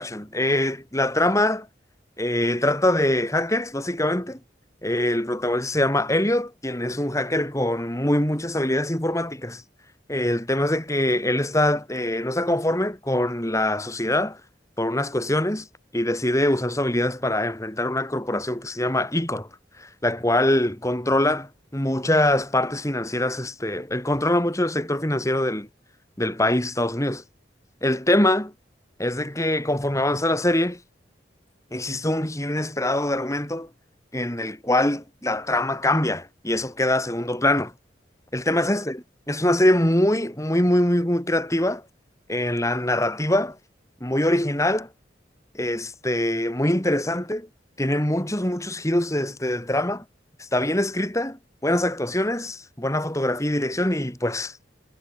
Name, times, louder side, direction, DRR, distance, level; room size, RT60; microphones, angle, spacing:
voice 1, 0.0-1.7 2.2-4.4 4.8-9.6 10.1-14.4 14.8-15.7 15.9-19.5 19.8-25.7 26.2-27.2 27.8-28.5 29.0-30.8 31.7-33.7 34.1-37.7 38.3-41.8 42.3-43.6 44.0-44.9 45.5-47.5 47.8-50.0 50.4-51.4 51.6-54.6, left 1 dB, 15° left, 3.7 m, -23 dB
head